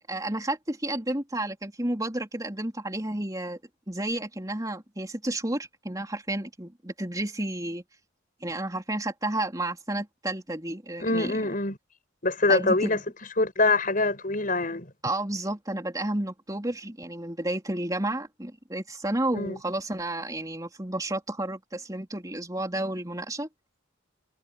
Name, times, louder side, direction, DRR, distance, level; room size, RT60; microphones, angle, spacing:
voice 1, 0.1-3.6 3.9-7.8 8.4-11.4 12.5-13.0 15.0-23.5, right 1 dB, 20° right, 4.0 m, -31 dB
voice 2, 11.0-11.8 12.2-13.0 13.4-14.9 19.3-19.6, left 2 dB, 45° left, 5.9 m, -24 dB
head